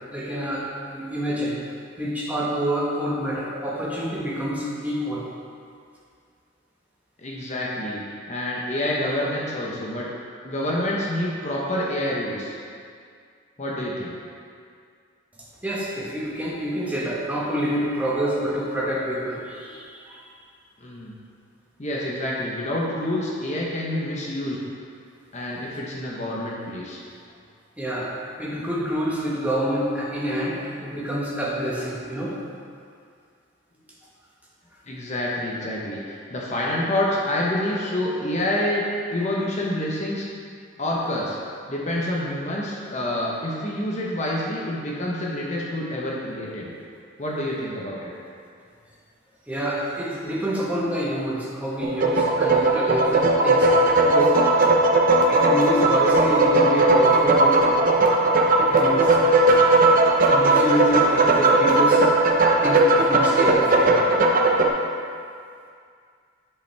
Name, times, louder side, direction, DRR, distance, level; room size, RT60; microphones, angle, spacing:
voice 1, 0.1-1.6 2.0-5.2 15.6-20.3 27.8-28.1 28.4-32.4 49.5-53.7 54.0-54.7 55.3-57.7 58.6-59.2 60.2-62.1 62.6-64.1, right 1 dB, 10° right, -6 dB, 1.3 m, -27 dB
voice 2, 7.2-8.0 8.3-10.1 10.4-12.5 13.6-14.1 20.8-21.1 21.8-24.6 25.3-27.0 34.9-38.8 39.1-40.3 40.8-41.4 41.7-46.7 47.2-48.1, left 1 dB, 35° left, -4 dB, 0.9 m, -27 dB
sound 1, 51.8-64.7, right 2 dB, 45° right, 0.6 m, -18 dB
9.8 x 5.3 x 3.4 m, 2.2 s
head